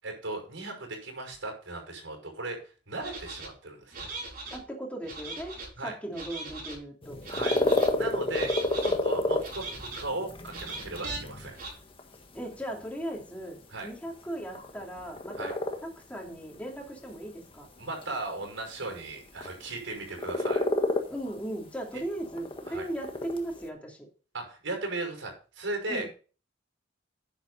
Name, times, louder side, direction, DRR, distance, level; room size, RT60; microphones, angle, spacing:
voice 1, 0.0-4.1 5.8-5.9 7.3-7.5 7.9-8.5 8.8-11.6 13.7-13.9 15.4-15.5 17.8-20.7 22.6-22.9 24.3-26.1, right 2 dB, 90° right, 2 dB, 5.8 m, -37 dB
sound 1, 3.0-3.5 3.9-4.6 5.0-5.7 6.1-6.8 7.2-7.9 8.3-8.9 9.4-10.1 10.5-11.2 11.6-11.7, right 3 dB, 50° right, 5.1 m, -39 dB
voice 2, 4.5-5.5 5.8-7.2 8.3-8.5 12.3-17.7 21.1-24.0 25.9-26.1, right 1 dB, 5° left, -1 dB, 2.9 m, -37 dB
sound 2, 7.0-23.7, left 1 dB, 30° left, 1.5 m, -31 dB
10.5 x 8.1 x 4.1 m, 0.37 s
head